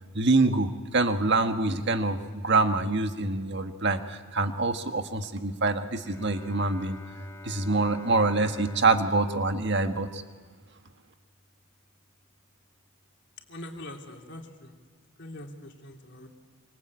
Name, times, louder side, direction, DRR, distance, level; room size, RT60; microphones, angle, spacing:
voice 1, 0.1-7.0 7.4-10.2, right 3 dB, 50° right, 7 dB, 1.7 m, -25 dB
Bowed string instrument, 6.0-11.7, left 1 dB, 15° left, 2.4 m, -46 dB
voice 2, 13.5-14.7 15.2-16.3, left 1 dB, 55° left, 2 dB, 3.3 m, -43 dB
26.0 x 26.0 x 8.6 m, 1.5 s
head